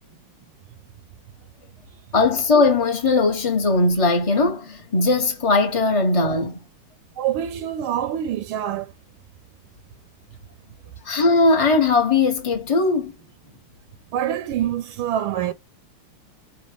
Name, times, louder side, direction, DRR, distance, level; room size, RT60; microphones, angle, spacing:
voice 1, 2.1-6.6 11.0-13.1, left 3 dB, 40° left, 0.4 m, -19 dB
voice 2, 7.2-8.9 14.1-15.5, right 10 dB, 80° right, 1.4 m, -25 dB
6.2 x 2.2 x 3.4 m
omnidirectional pair, 2.4 m